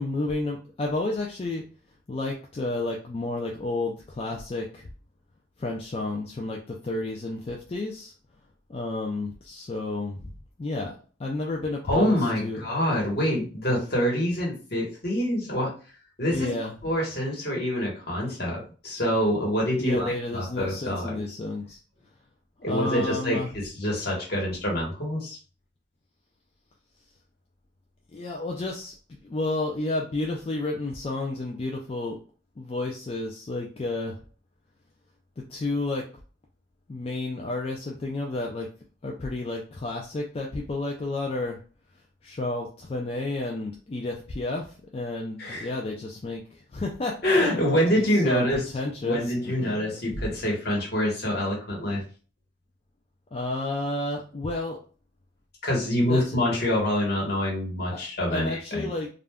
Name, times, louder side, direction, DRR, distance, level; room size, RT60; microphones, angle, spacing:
voice 1, 0.0-1.6 2.1-4.9 5.6-8.1 8.7-10.2 10.6-10.9 11.2-12.6 16.3-16.7 19.8-21.8 22.7-23.5 28.1-32.2 32.6-34.2 35.5-36.0 36.9-38.7 39.0-41.6 42.2-49.2 49.6-50.3 53.3-54.8 56.1-56.2 57.9-58.0 58.3-59.1, left 2 dB, 35° left, 0 dB, 0.4 m, -31 dB
voice 2, 11.9-15.7 16.2-16.5 16.8-21.4 22.6-25.4 45.4-45.7 47.2-48.6 49.0-52.0 55.6-58.9, equal, 60° left, -2 dB, 1.2 m, -26 dB
2.4 x 2.2 x 3.4 m, 0.38 s
head